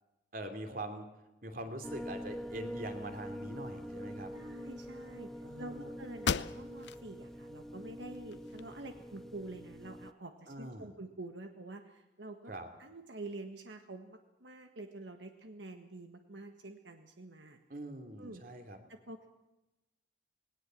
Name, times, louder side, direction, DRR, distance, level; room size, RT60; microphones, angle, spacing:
voice 1, 0.3-1.1 1.4-4.3 5.4-5.9 10.5-10.9 12.5-12.7 17.7-18.8, right 1 dB, 50° right, 6 dB, 2.8 m, -43 dB
sound 1, 1.8-10.1, equal, ahead, 0.7 m, -45 dB
voice 2, 4.3-12.5 12.8-17.6 18.2-18.4 18.9-19.3, right 2 dB, 75° right, 5 dB, 1.6 m, -47 dB
sound 2, 5.7-5.8 6.2-7.0 7.5-7.6 8.1-9.0, left 6 dB, 75° left, 0.6 m, -36 dB
20.0 x 18.5 x 7.6 m, 0.98 s
head